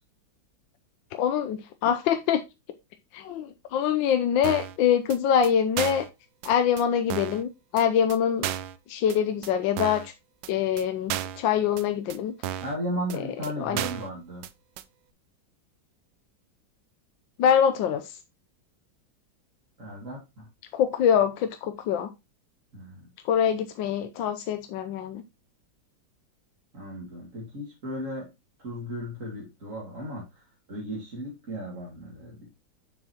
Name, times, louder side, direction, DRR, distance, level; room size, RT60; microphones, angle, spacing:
voice 1, 1.1-2.4 3.1-6.1 6.4-8.5 8.9-10.1 10.5-12.3 13.6-13.8 17.4-18.2 20.7-22.1 23.2-25.2, left 8 dB, 75° left, 1.4 m, -24 dB
sound 1, 4.4-4.8 5.1-5.2 5.4-5.5 5.8-6.1 6.4-6.5 6.8-6.9 7.1-7.4 7.8-7.9 8.1-8.2 8.4-8.8 9.1-9.2 9.4-9.5 9.8-10.1 10.4-10.5 10.8-10.9 11.1-11.4 11.8-11.9 12.1-12.2 12.4-12.8 13.1-13.2 13.4-13.5 13.8-14.1 14.4-14.5 14.8-14.9, right 12 dB, 75° right, 1.2 m, -33 dB
voice 2, 12.6-14.4 19.8-20.5 22.7-23.1 26.7-28.3 28.6-30.4 30.7-32.5, equal, 40° right, 2.3 m, -35 dB
7.2 x 6.8 x 2.9 m
omnidirectional pair, 2.1 m